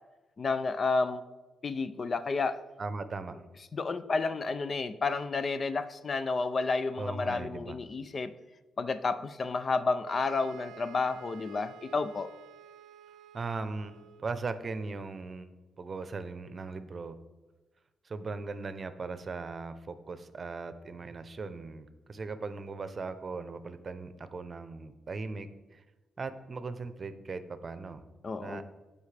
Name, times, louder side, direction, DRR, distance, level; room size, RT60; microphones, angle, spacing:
voice 1, 0.4-1.2 1.6-2.6 3.7-8.3 8.8-12.3 28.2-28.7, left 4 dB, 45° left, 12 dB, 0.5 m, -31 dB
voice 2, 2.8-3.4 7.0-7.8 13.3-15.5 15.8-17.2 18.0-25.8 26.2-28.0 28.4-28.6, right 4 dB, 45° right, 11 dB, 0.7 m, -38 dB
sound 1, 10.0-14.4, right 9 dB, 85° right, 0.4 m, -52 dB
15.5 x 5.3 x 3.4 m, 1.2 s
cardioid pair, 75°, 0 cm